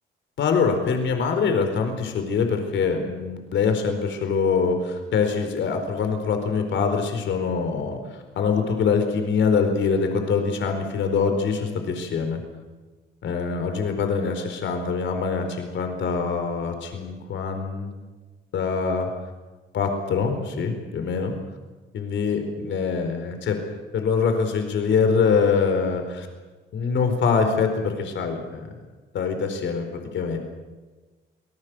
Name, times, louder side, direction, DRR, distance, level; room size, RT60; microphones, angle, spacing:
voice 1, 0.4-8.0 8.4-12.4 13.2-17.9 18.5-19.1 19.7-21.3 21.9-23.6 23.9-26.3 26.7-28.7 29.1-30.4, left 5 dB, 70° left, 6 dB, 4.5 m, -24 dB
27.0 x 19.0 x 7.9 m, 1.3 s
cardioid pair, 90°, 20 cm